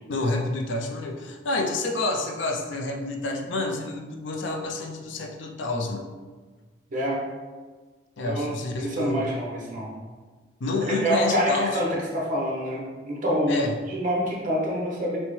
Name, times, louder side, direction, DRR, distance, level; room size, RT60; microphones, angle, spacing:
voice 1, 0.1-6.1 8.2-9.2 10.6-11.8 13.5-13.7, left 2 dB, 65° left, 2 dB, 0.5 m, -28 dB
voice 2, 6.9-7.2 8.2-9.9 10.8-15.2, equal, 40° right, -3 dB, 0.9 m, -27 dB
6.2 x 2.1 x 3.1 m, 1.4 s
head